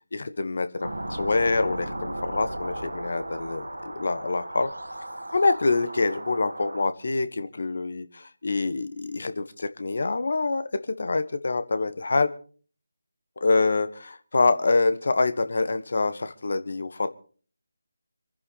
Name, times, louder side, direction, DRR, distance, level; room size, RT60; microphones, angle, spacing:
voice 1, 0.1-4.7 5.3-12.3 13.4-17.1, left 3 dB, 55° left, 11 dB, 1.5 m, -26 dB
sound 1, 0.8-6.8, right 1 dB, 75° right, 2.5 m, -35 dB
27.0 x 10.5 x 4.2 m, 0.43 s
figure-of-eight pair, 155°, 0 cm